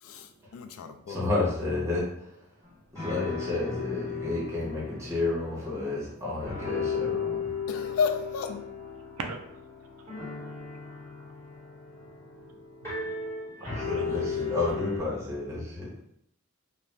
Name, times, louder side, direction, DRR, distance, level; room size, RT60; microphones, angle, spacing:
voice 1, 0.0-1.2 7.7-8.6, left 6 dB, 75° left, 0.3 m, -31 dB
voice 2, 1.1-2.1 2.9-7.4 13.6-15.9, left 2 dB, 15° right, 0.8 m, -31 dB
sound 1, 2.7-2.8 2.9-6.1 6.4-15.0, left 5 dB, 15° left, 1.3 m, -35 dB
voice 3, 12.0-12.5 12.8-13.3 13.6-14.1 15.8-16.0, right 4 dB, 85° right, 0.4 m, -41 dB
2.4 x 2.1 x 3.0 m
head